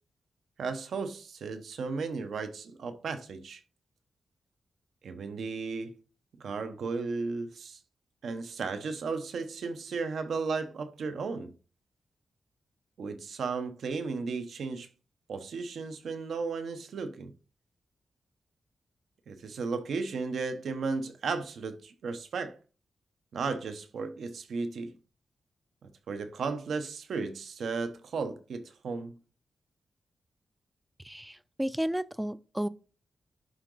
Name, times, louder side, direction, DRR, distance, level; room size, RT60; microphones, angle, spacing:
voice 1, 0.6-3.6 5.0-5.9 6.4-7.8 8.2-11.5 13.0-14.9 15.3-17.3 19.3-22.6 23.3-25.0 26.1-29.2, right 4 dB, 75° right, 0.9 m, -35 dB
voice 2, 31.0-32.7, equal, 5° right, 0.3 m, -32 dB
11.0 x 3.9 x 3.9 m
wide cardioid pair, 170°, 0 cm